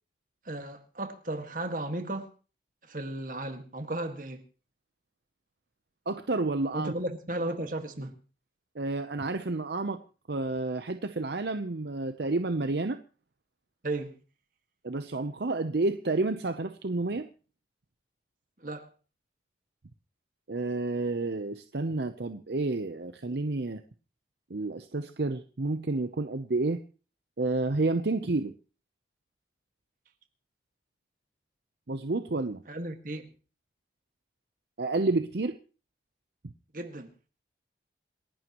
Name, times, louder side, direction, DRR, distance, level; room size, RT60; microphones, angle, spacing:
voice 1, 0.4-2.3 2.9-4.4 6.7-8.2 13.8-14.2 18.6-18.9 32.7-33.3 36.7-37.1, right 1 dB, 45° right, 1.8 m, -35 dB
voice 2, 6.1-6.9 8.7-10.0 10.3-13.0 14.8-17.3 20.5-23.8 24.5-26.8 27.4-28.5 31.9-32.6 34.8-35.6, right 2 dB, 65° right, 0.7 m, -30 dB
28.0 x 11.5 x 3.0 m
head